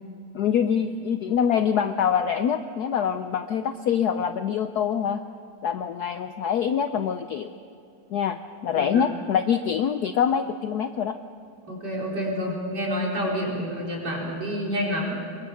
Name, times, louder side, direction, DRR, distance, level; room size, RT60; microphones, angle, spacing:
voice 1, 0.3-5.2 5.6-7.5 8.1-11.1, left 8 dB, 70° left, 9 dB, 0.9 m, -25 dB
voice 2, 8.7-9.1 11.7-15.2, equal, 50° right, -3 dB, 4.6 m, -28 dB
23.5 x 22.5 x 5.6 m, 2.6 s
omnidirectional pair, 2.3 m